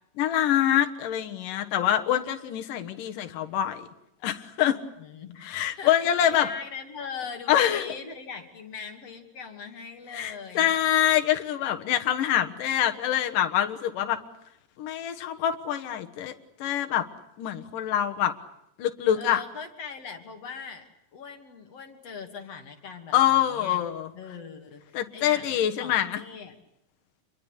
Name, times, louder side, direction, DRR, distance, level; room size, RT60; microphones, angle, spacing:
voice 1, 0.2-3.9 4.2-4.8 5.4-6.5 7.5-7.9 10.1-14.2 14.8-16.3 16.6-17.0 17.4-18.3 18.8-19.4 23.1-24.1 24.9-26.2, left 11 dB, 75° left, 5 dB, 3.0 m, -25 dB
voice 2, 5.0-10.7 19.2-23.9 24.1-26.5, left 5 dB, 50° left, 5 dB, 3.6 m, -41 dB
28.0 x 22.5 x 8.2 m, 0.81 s
omnidirectional pair, 3.8 m